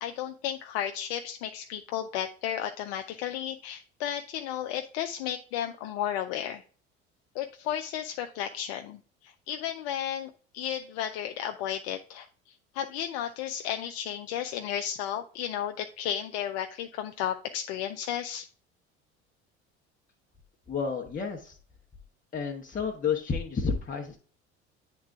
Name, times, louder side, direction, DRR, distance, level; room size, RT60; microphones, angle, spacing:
voice 1, 0.0-6.6 7.3-18.5, left 10 dB, 65° left, 6 dB, 0.6 m, -33 dB
voice 2, 20.7-21.6 22.3-24.2, left 5 dB, 25° left, 0 dB, 1.1 m, -31 dB
8.6 x 3.7 x 3.5 m, 0.42 s
hypercardioid pair, 65°, 33 cm